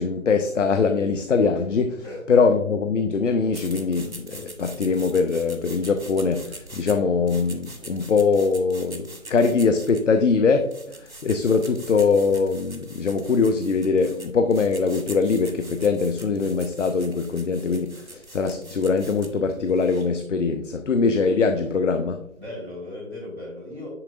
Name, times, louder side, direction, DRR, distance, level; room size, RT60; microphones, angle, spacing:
voice 1, 0.0-22.2, left 4 dB, 60° left, 0.6 m, -22 dB
voice 2, 2.0-2.4 22.4-23.9, left 1 dB, 5° right, 2.6 m, -37 dB
sound 1, 3.5-20.2, right 2 dB, 80° right, 1.3 m, -44 dB
9.8 x 4.4 x 2.5 m
figure-of-eight pair, 150°, 41 cm